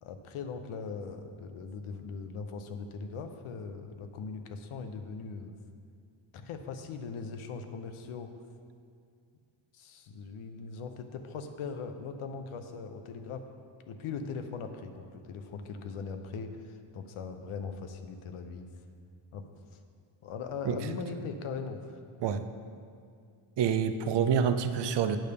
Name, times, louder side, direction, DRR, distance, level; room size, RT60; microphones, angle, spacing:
voice 1, 0.0-5.5 6.3-8.4 9.7-13.5 13.9-18.7 19.3-19.8 20.2-22.0, left 5 dB, 75° left, 7 dB, 0.7 m, -40 dB
voice 2, 23.6-25.2, right 7 dB, 60° right, 10 dB, 0.5 m, -27 dB
8.8 x 3.4 x 6.7 m, 2.2 s
wide cardioid pair, 145°, 50 cm